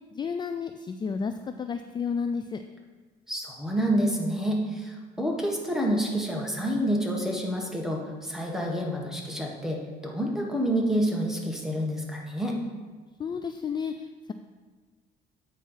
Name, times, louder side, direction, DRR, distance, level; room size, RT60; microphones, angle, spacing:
voice 1, 0.1-2.6 13.2-14.3, left 6 dB, 25° left, 8 dB, 0.3 m, -32 dB
voice 2, 3.3-12.5, equal, 5° right, -1 dB, 1.4 m, -28 dB
8.6 x 4.3 x 5.6 m, 1.4 s
cardioid pair, 110°, 17 cm